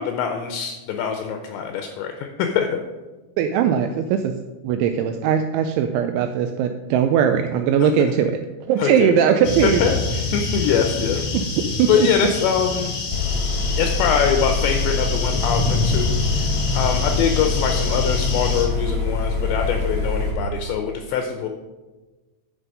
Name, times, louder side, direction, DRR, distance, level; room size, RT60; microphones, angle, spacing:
voice 1, 0.0-2.8 7.8-7.9 8.8-9.1 9.6-10.0 10.3-11.2 11.9-13.0 13.8-21.5, left 7 dB, 85° left, 4 dB, 2.5 m, -23 dB
voice 2, 3.4-4.3 4.6-8.3 8.7-9.8 11.3-11.9, right 8 dB, 85° right, 6 dB, 2.7 m, -20 dB
sound 1, 9.4-18.7, left 3 dB, 60° left, 2.1 m, -26 dB
sound 2, 13.1-20.3, left 3 dB, 30° left, 0.7 m, -24 dB
9.7 x 5.8 x 5.3 m, 1.2 s
omnidirectional pair, 5.9 m